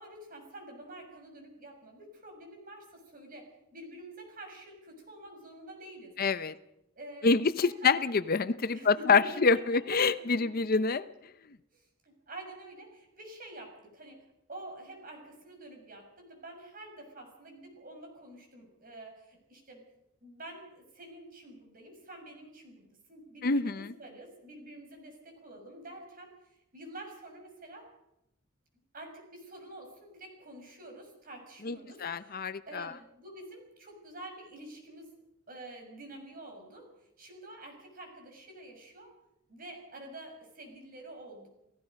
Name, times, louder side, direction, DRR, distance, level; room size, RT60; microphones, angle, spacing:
voice 1, 0.0-6.1 6.9-7.9 8.7-9.6 10.2-11.0 11.7-14.2 14.5-19.8 20.2-27.9 28.9-35.1 35.5-36.9 37.2-39.1 39.5-41.5, right 1 dB, 45° right, 3 dB, 6.2 m, -48 dB
voice 2, 6.2-6.5 7.2-11.0 23.4-23.9 31.6-32.9, left 4 dB, 45° left, 13 dB, 0.7 m, -26 dB
29.5 x 17.5 x 5.3 m, 0.85 s
head